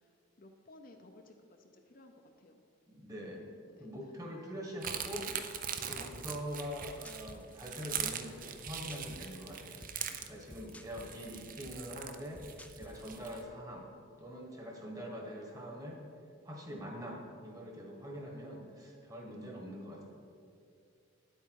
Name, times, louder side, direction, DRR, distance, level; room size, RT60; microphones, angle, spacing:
voice 1, 0.0-2.6 3.7-3.9 10.1-10.3, left 2 dB, 45° left, 4 dB, 0.6 m, -58 dB
voice 2, 2.9-3.5 3.8-5.3 5.8-9.8 10.2-13.9 14.2-16.0 16.4-20.0, equal, 15° right, 0 dB, 1.4 m, -44 dB
sound 1, 4.8-13.4, right 8 dB, 40° right, 0.5 m, -41 dB
sound 2, 6.1-13.5, left 1 dB, 5° left, 0.3 m, -54 dB
9.8 x 8.1 x 4.7 m, 2.4 s
head